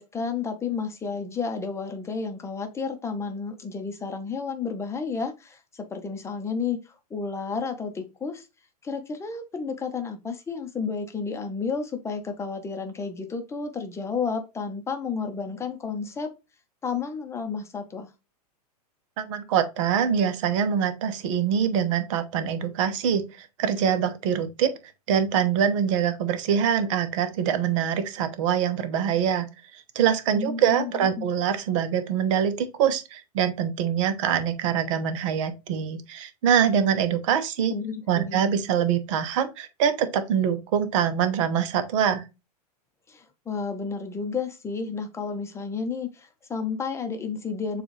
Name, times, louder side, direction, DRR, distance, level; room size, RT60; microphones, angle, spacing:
voice 1, 0.0-8.5 8.8-16.3 16.8-18.1 30.3-31.3 37.7-38.4 43.1-47.8, left 5 dB, 15° left, 0.7 m, -31 dB
voice 2, 19.2-24.7 25.1-29.5 29.7-37.7 38.1-42.2, right 8 dB, 50° right, 0.8 m, -24 dB
6.9 x 2.4 x 3.1 m
hypercardioid pair, 105°, 21 cm